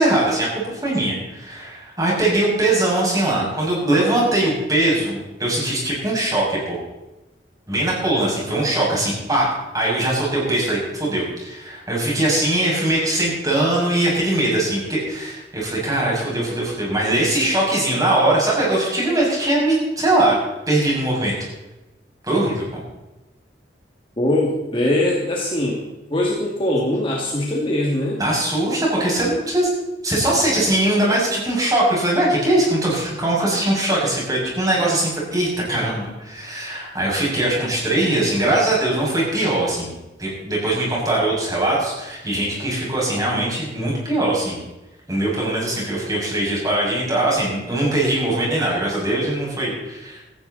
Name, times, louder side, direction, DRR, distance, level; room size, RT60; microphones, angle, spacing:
voice 1, 0.0-6.8 7.7-9.5 9.7-20.4 20.7-21.3 22.2-22.8 28.2-29.7 30.0-39.9 40.2-44.6 45.1-50.2, right 1 dB, 20° right, -4 dB, 6.7 m, -21 dB
voice 2, 24.2-25.8 26.1-28.2, left 1 dB, 30° left, -3 dB, 2.3 m, -21 dB
17.0 x 14.5 x 4.2 m, 1.0 s
head